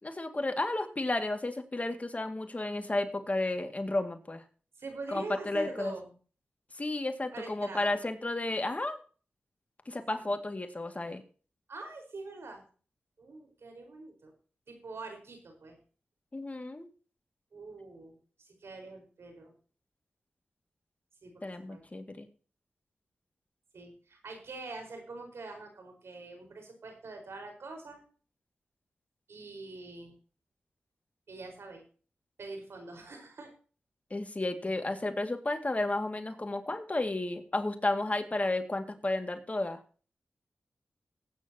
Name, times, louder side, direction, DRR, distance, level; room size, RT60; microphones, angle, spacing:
voice 1, 0.0-4.4 5.1-5.9 6.7-9.0 9.9-11.2 16.3-16.9 21.4-22.3 34.1-39.8, left 2 dB, 35° left, 6 dB, 2.1 m, -32 dB
voice 2, 4.8-6.1 7.3-8.0 11.7-12.6 13.2-14.3 14.7-15.8 17.5-18.2 18.4-19.5 21.2-21.8 23.7-28.0 29.3-30.1 31.3-31.8 32.4-33.5, right 3 dB, 75° right, 4 dB, 4.8 m, -44 dB
18.0 x 9.5 x 2.9 m, 0.39 s
cardioid pair, 50°, 4 cm